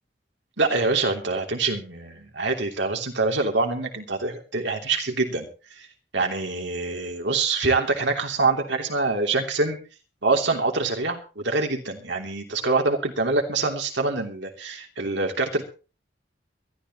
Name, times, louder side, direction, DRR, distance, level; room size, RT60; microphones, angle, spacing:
voice 1, 0.6-5.5 6.1-9.8 10.2-15.6, right 3 dB, 90° right, 3 dB, 3.1 m, -25 dB
22.5 x 13.0 x 3.1 m, 0.34 s
head